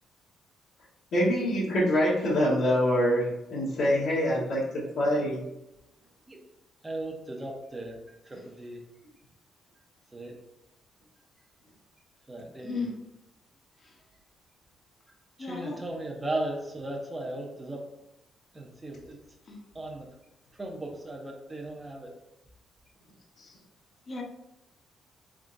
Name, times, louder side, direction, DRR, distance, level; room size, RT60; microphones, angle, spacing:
voice 1, 1.1-5.4, equal, 70° left, -9 dB, 1.3 m, -25 dB
voice 2, 6.8-8.0 8.3-8.8 10.1-10.3 12.3-12.9 15.4-17.9 18.5-19.2 19.7-20.1 20.6-22.1, right 1 dB, 20° right, 0 dB, 0.7 m, -36 dB
voice 3, 12.6-13.0 13.8-13.9 15.4-15.8 19.5-19.6 24.1-24.2, left 4 dB, 40° left, 1 dB, 0.8 m, -35 dB
3.6 x 3.6 x 2.6 m, 0.89 s
cardioid pair, 90°, 0 cm